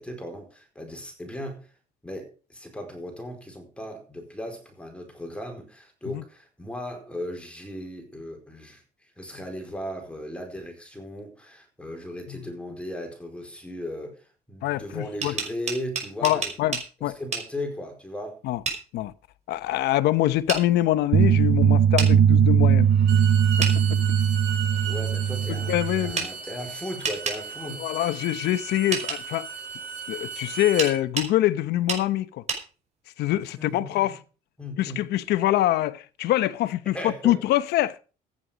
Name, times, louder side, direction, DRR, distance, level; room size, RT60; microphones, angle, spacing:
voice 1, 0.0-1.7 2.0-18.4 24.8-27.8 33.3-34.2 34.6-35.0 36.9-37.4, left 1 dB, 5° left, 4.6 m, -37 dB
voice 2, 14.6-15.3 16.2-17.2 18.4-18.6 18.9-19.1 19.5-22.9 23.9-24.0 25.5-26.3 27.8-29.5 30.1-32.4 33.2-34.2 34.8-38.0, left 14 dB, 80° left, 0.9 m, -24 dB
sound 1, 15.0-16.9 17.3-17.5 18.7-18.8 20.5-20.6 22.0-22.1 23.6-23.8 26.2-26.3 27.0-27.4 28.9-29.2 30.8-31.3 31.9-32.0 32.5-32.6, right 5 dB, 40° right, 5.4 m, -29 dB
sound 2, 21.1-26.1, right 8 dB, 70° right, 1.1 m, -20 dB
Bowed string instrument, 22.9-31.0, right 7 dB, 90° right, 5.9 m, -36 dB
14.5 x 9.7 x 5.1 m
cardioid pair, 110°, 17 cm